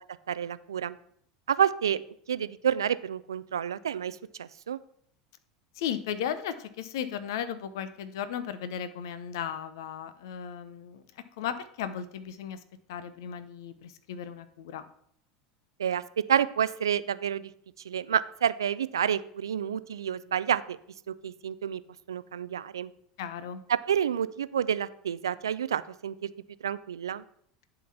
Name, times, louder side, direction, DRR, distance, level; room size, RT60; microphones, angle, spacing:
voice 1, 0.3-1.0 1.5-2.0 2.3-4.8 15.8-16.0 16.3-17.5 17.9-20.8 21.1-21.8 22.1-22.9 23.7-26.3 26.6-27.2, right 9 dB, 85° right, 16 dB, 0.3 m, -29 dB
voice 2, 5.8-11.0 11.4-12.6 12.9-14.9 23.2-23.6, left 8 dB, 70° left, 12 dB, 0.6 m, -35 dB
10.5 x 3.9 x 5.7 m, 0.66 s
hypercardioid pair, 85°, 2 cm